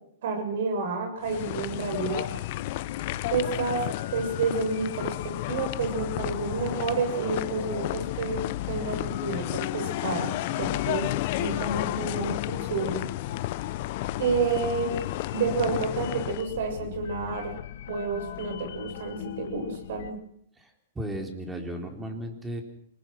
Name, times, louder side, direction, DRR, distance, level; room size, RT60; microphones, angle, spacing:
voice 1, 0.2-2.3 3.3-3.8 4.1-13.1 14.2-15.0 15.3-17.5 17.9-20.2, right 4 dB, 70° right, 6 dB, 7.3 m, -30 dB
sound 1, 1.2-16.5, left 18 dB, 50° left, 0.8 m, -32 dB
sound 2, 2.3-20.1, left 11 dB, 70° left, 1.2 m, -40 dB
voice 2, 21.0-22.6, equal, 10° right, 3 dB, 4.1 m, -35 dB
25.5 x 19.0 x 6.1 m, 0.68 s
hypercardioid pair, 135°, 0 cm